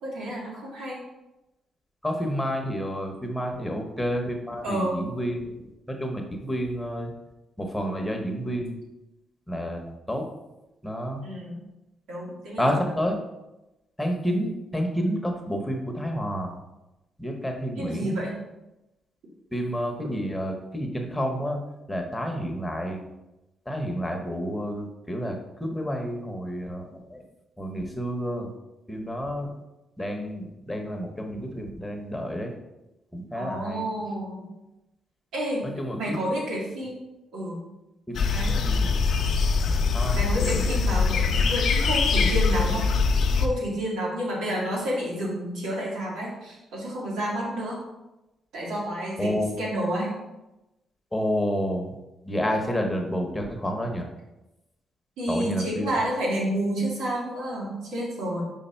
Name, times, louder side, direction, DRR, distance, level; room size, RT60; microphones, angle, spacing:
voice 1, 0.0-1.0 4.6-5.0 11.2-11.6 12.1-12.9 17.8-18.4 33.3-34.5 35.3-35.7 35.9-37.0 37.3-37.6 38.3-38.6 40.1-42.9 43.3-47.8 48.5-50.1 55.2-58.4, right 1 dB, 90° right, -4 dB, 2.2 m, -30 dB
voice 2, 2.0-7.1 7.6-8.8 9.5-10.3 10.8-11.2 12.6-13.2 14.0-16.6 17.2-18.2 19.5-21.6 21.9-23.0 23.7-27.2 27.6-28.5 28.9-29.5 30.0-32.5 33.1-33.8 35.6-36.2 38.1-38.3 38.7-38.9 39.9-40.7 49.2-49.5 51.1-52.0 52.2-54.0 55.3-56.1, equal, 10° left, 2 dB, 1.0 m, -30 dB
sound 1, 38.1-43.5, left 4 dB, 60° left, 0.7 m, -23 dB
5.3 x 4.8 x 4.5 m, 0.98 s
cardioid pair, 90°, 0 cm